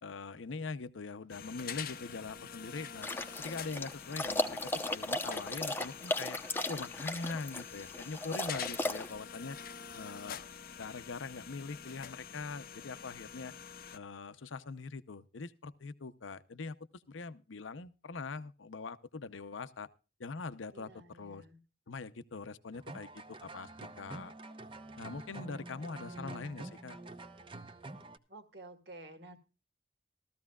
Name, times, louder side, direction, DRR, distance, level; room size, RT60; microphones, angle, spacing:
voice 1, 0.0-3.1 3.4-6.4 6.7-9.6 9.9-10.5 10.8-13.5 13.9-19.9 20.2-21.4 21.9-23.7 24.0-24.3 25.0-27.0, left 4 dB, 85° left, 13 dB, 0.7 m, -42 dB
sound 1, 1.3-14.0, left 7 dB, 45° left, 0.6 m, -46 dB
sound 2, 3.0-9.1, left 2 dB, 10° left, 0.8 m, -36 dB
voice 2, 20.7-21.6 25.7-26.3 28.3-29.4, right 2 dB, 60° right, 7 dB, 1.9 m, -52 dB
sound 3, 22.7-28.2, right 2 dB, 25° right, 0.7 m, -47 dB
16.5 x 14.0 x 2.3 m, 0.31 s
head